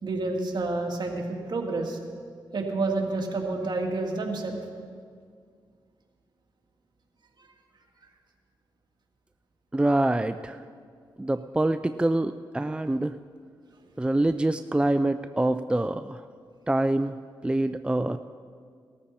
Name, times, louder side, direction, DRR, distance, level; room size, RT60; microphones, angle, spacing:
voice 1, 0.0-2.0 2.5-4.6 7.4-7.5, right 3 dB, 60° right, 1 dB, 2.3 m, -29 dB
voice 2, 9.7-10.6 11.2-13.1 14.0-16.2 16.7-17.1 17.4-18.2, right 1 dB, 10° right, 10 dB, 0.4 m, -25 dB
19.0 x 13.5 x 4.4 m, 2.1 s
cardioid pair, 60°, 9 cm